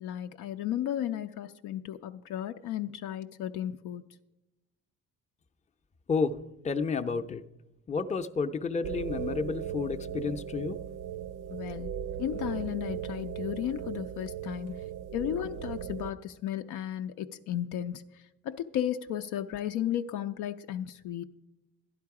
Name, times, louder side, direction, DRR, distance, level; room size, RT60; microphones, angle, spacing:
voice 1, 0.0-4.0 11.5-11.9 12.2-14.8 15.1-18.0 18.5-21.2, left 11 dB, 90° left, 7 dB, 0.5 m, -34 dB
voice 2, 6.6-7.4 7.9-10.8, left 4 dB, 25° left, 6 dB, 0.5 m, -30 dB
sound 1, 8.8-16.1, right 10 dB, 80° right, 0.6 m, -37 dB
11.5 x 11.0 x 4.7 m, 0.98 s
cardioid pair, 90°, 30 cm